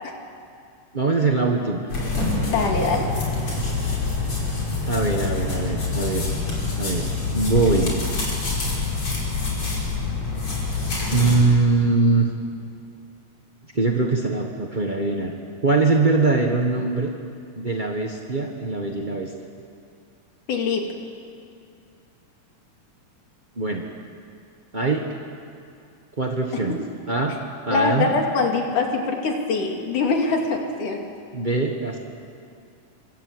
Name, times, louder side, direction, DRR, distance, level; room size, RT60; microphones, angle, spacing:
voice 1, 0.9-1.9 4.9-6.2 6.8-8.0 11.1-12.3 13.7-15.3 15.6-17.1 17.6-19.3 23.6-23.8 24.7-25.0 26.2-26.8 27.1-27.4 27.6-28.1 31.3-32.0, right 3 dB, 45° right, 1 dB, 0.6 m, -22 dB
sound 1, 1.9-11.4, left 3 dB, 40° left, 6.2 m, -26 dB
voice 2, 2.5-3.1 20.5-20.9 27.7-31.0, left 4 dB, 70° left, 2 dB, 4.0 m, -23 dB
26.0 x 25.5 x 8.0 m, 2.4 s
omnidirectional pair, 3.7 m